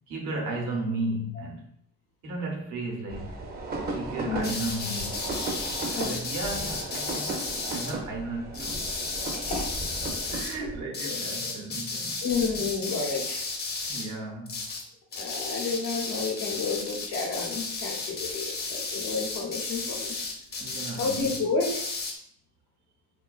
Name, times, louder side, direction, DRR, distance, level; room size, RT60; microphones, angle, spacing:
voice 1, 0.1-1.7 2.2-3.4 3.9-9.0 10.3-12.3 13.9-14.7 20.6-21.3, right 2 dB, 80° right, 0 dB, 0.8 m, -35 dB
sound 1, 3.1-10.8, right 3 dB, 35° right, 0.4 m, -36 dB
sound 2, 4.4-7.9 8.5-10.6 10.9-14.1 14.5-14.9 15.1-22.2, left 3 dB, 35° left, 0.5 m, -34 dB
voice 2, 9.3-9.7 11.0-11.2 11.4-11.5 12.2-13.4 15.2-20.1 21.0-21.8, left 4 dB, 90° left, 0 dB, 0.7 m, -31 dB
2.4 x 2.2 x 2.3 m, 0.68 s
cardioid pair, 90°, 30 cm